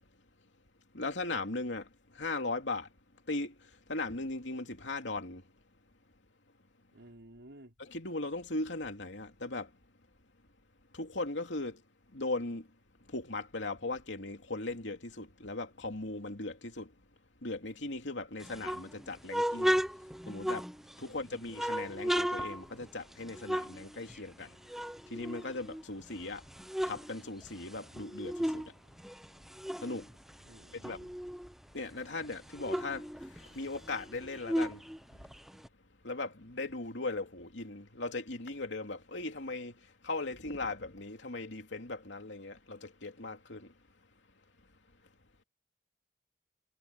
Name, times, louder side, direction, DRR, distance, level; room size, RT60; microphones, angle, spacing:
voice 1, 0.9-2.9 3.3-5.4 7.8-9.7 10.9-11.8 12.1-12.7 13.1-16.9 17.4-19.8 20.3-20.7 21.0-24.6 25.1-26.4 26.8-28.7 29.8-30.1 30.7-31.0 31.7-34.8 36.0-43.7, left 2 dB, 90° left, 2.9 m, -38 dB
voice 2, 6.9-7.7 21.0-21.4 30.4-31.1, right 1 dB, 85° right, 5.1 m, -55 dB
sound 1, 18.4-21.1 21.5-24.4 24.7-26.0 26.4-28.7 29.0-31.5 31.9-32.0 32.2-35.7, equal, ahead, 0.7 m, -35 dB
head